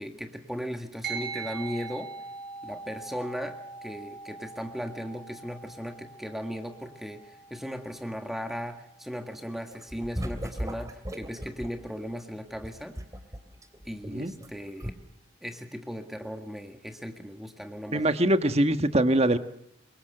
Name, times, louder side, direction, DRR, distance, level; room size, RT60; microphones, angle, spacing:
voice 1, 0.0-2.1 2.6-13.0 13.9-15.0 15.4-18.1, equal, ahead, 5 dB, 1.8 m, -37 dB
sound 1, 1.0-10.7, right 4 dB, 50° right, 5.3 m, -43 dB
sound 2, 9.7-11.8 12.5-14.5 14.8-14.9, equal, 15° right, 2.9 m, -36 dB
voice 2, 17.9-19.4, right 1 dB, 35° right, 9 dB, 1.4 m, -23 dB
28.5 x 24.0 x 7.9 m, 0.75 s
head